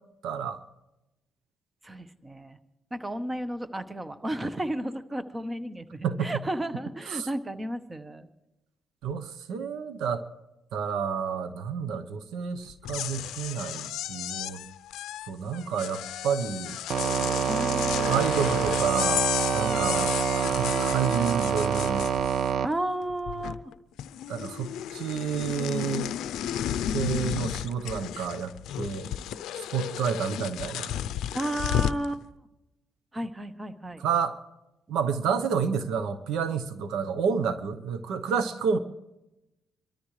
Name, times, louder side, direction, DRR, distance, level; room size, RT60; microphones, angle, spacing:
voice 1, 0.2-0.6 6.0-6.3 7.1-7.3 9.0-10.2 10.7-14.6 15.3-16.8 18.0-19.2 19.5-22.1 24.3-26.2 26.9-28.5 28.8-29.1 29.7-30.9 34.0-34.4 34.9-38.8, right 6 dB, 90° right, 11 dB, 0.9 m, -29 dB
voice 2, 1.8-2.6 2.9-8.3 17.5-18.4 19.7-20.0 22.6-23.7 31.3-32.2 33.1-34.0, right 1 dB, 20° right, 11 dB, 1.0 m, -33 dB
sound 1, 12.7-22.7 23.0-23.7 24.0-32.1, left 11 dB, 85° left, 0.5 m, -33 dB
sound 2, 16.9-22.7, right 8 dB, 65° right, 0.4 m, -26 dB
25.5 x 13.5 x 3.2 m, 0.96 s
cardioid pair, 90°, 0 cm